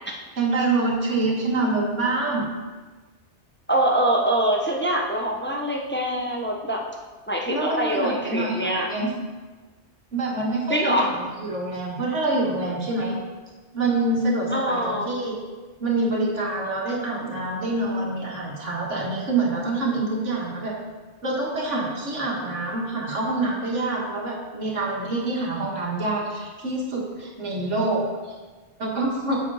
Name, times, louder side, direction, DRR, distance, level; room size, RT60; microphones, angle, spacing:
voice 1, 0.4-2.5 7.5-9.1 10.1-13.2 13.7-15.4 15.8-20.7 21.2-28.0 28.8-29.4, right 2 dB, 90° right, -2 dB, 2.1 m, -26 dB
voice 2, 3.7-6.8 7.3-8.9 10.7-11.1 14.5-15.1, right 1 dB, 10° left, -1 dB, 0.8 m, -24 dB
7.7 x 6.8 x 4.9 m, 1.3 s
omnidirectional pair, 1.2 m